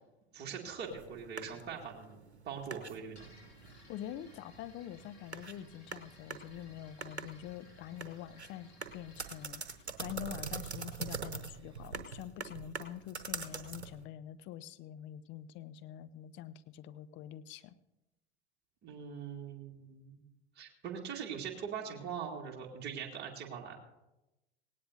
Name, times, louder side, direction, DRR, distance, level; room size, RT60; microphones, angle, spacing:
voice 1, 0.3-3.3 18.8-20.2 20.6-23.8, right 7 dB, 30° right, 0 dB, 2.2 m, -42 dB
sound 1, 0.9-14.0, right 5 dB, 80° right, 1.0 m, -45 dB
sound 2, 3.1-10.9, left 2 dB, 90° left, 5.9 m, -60 dB
voice 2, 3.6-9.6 10.0-17.8, left 11 dB, 35° left, 12 dB, 0.8 m, -46 dB
18.0 x 18.0 x 2.7 m, 0.98 s
figure-of-eight pair, 80°, 32 cm